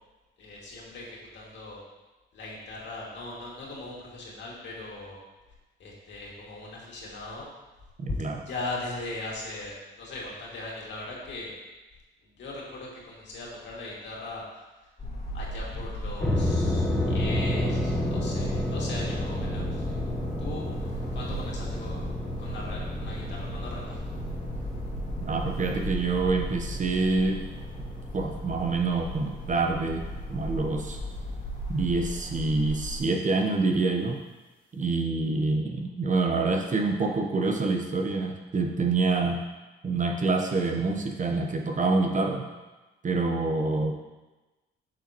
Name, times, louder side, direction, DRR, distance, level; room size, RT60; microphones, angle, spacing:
voice 1, 0.4-1.8 2.3-5.2 5.8-7.5 8.5-11.6 12.4-14.4 15.3-20.0 20.4-20.7 21.1-22.0 22.4-24.0, left 2 dB, 65° left, -4 dB, 2.3 m, -39 dB
sound 1, 15.0-33.0, equal, 35° left, 1.9 m, -36 dB
sound 2, 16.2-31.4, left 1 dB, 5° left, 1.2 m, -32 dB
voice 2, 25.2-27.4 28.1-31.0 31.7-34.2 34.7-39.4 39.8-42.4 43.0-43.9, right 3 dB, 40° right, 2 dB, 1.0 m, -26 dB
8.3 x 6.1 x 3.0 m, 1.1 s
cardioid pair, 90°, 20 cm